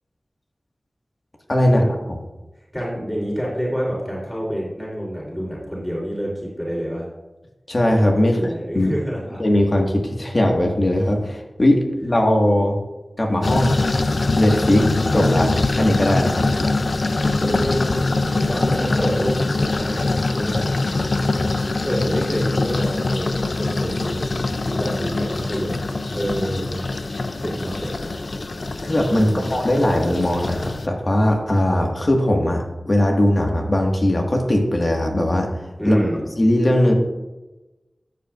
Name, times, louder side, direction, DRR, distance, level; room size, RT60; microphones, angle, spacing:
voice 1, 1.5-2.2 7.7-8.9 9.4-12.7 13.2-13.8 14.4-16.5 28.8-35.5 35.8-36.0 36.4-36.9, left 1 dB, 50° left, 1 dB, 1.7 m, -19 dB
voice 2, 2.7-7.1 8.2-9.4 17.4-20.7 21.8-26.8 27.4-28.2 29.1-29.7 35.8-36.3, equal, 10° left, -5 dB, 3.4 m, -28 dB
sound 1, 13.4-30.9, left 2 dB, 70° left, 0.5 m, -23 dB
13.0 x 7.8 x 2.5 m, 1.1 s
cardioid pair, 40°, 0 cm